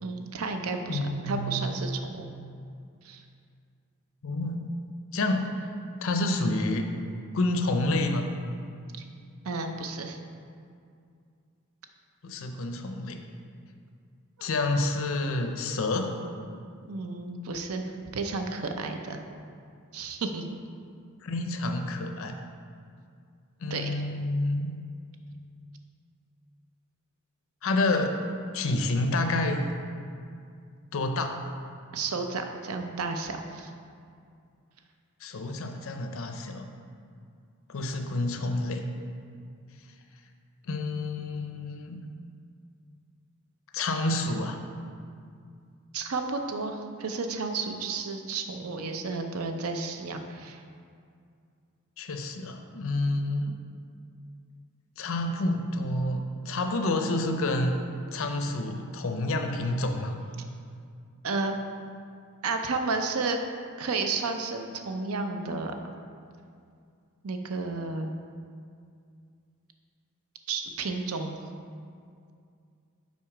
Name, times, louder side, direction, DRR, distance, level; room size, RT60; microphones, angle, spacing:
voice 1, 0.0-2.2 3.0-3.2 9.0-9.1 9.4-10.2 14.4-14.5 16.9-19.2 19.9-20.5 23.7-24.0 31.9-33.7 45.9-50.6 61.2-61.6 62.4-63.4 63.8-65.7 67.2-68.1 70.5-71.4, right 3 dB, 75° right, 5 dB, 0.6 m, -32 dB
voice 2, 0.9-1.7 4.2-4.8 5.1-5.7 6.0-6.9 7.3-8.3 12.2-13.2 14.4-16.1 21.2-22.3 23.6-24.7 27.6-28.2 28.5-29.7 30.9-31.4 35.2-36.7 37.7-38.8 40.7-42.1 43.7-44.6 52.0-53.6 55.0-57.8 58.1-60.2, left 2 dB, 65° left, 5 dB, 0.5 m, -28 dB
5.9 x 4.4 x 4.8 m, 2.3 s
head